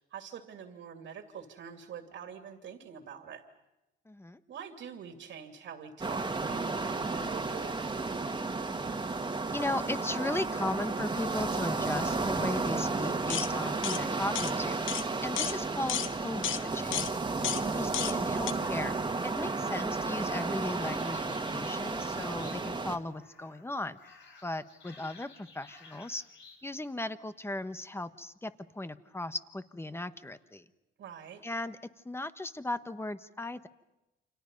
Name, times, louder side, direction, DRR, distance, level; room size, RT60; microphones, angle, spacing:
voice 1, 0.1-3.4 4.5-7.9 17.5-17.9 31.0-31.4, right 7 dB, 70° right, 5 dB, 2.6 m, -45 dB
voice 2, 4.1-4.4 9.5-17.0 17.8-24.0 24.4-26.2 26.6-30.6 31.4-31.8 32.0-33.7, left 2 dB, 10° left, 11 dB, 1.2 m, -37 dB
sound 1, 6.0-23.0, right 3 dB, 25° right, 1.9 m, -33 dB
sound 2, 13.3-13.5 13.8-14.0 14.3-14.5 14.9-15.0 15.4-15.6 15.9-16.1 16.4-16.6 16.9-17.1 17.4-17.6 17.9-18.1 18.5-18.6, left 11 dB, 85° left, 1.1 m, -32 dB
sound 3, 16.4-16.9 17.4-18.0 18.5-22.9 23.1-23.7 24.0-26.6, left 4 dB, 65° left, 7.0 m, -54 dB
29.0 x 26.5 x 5.4 m, 0.95 s
cardioid pair, 90°, 20 cm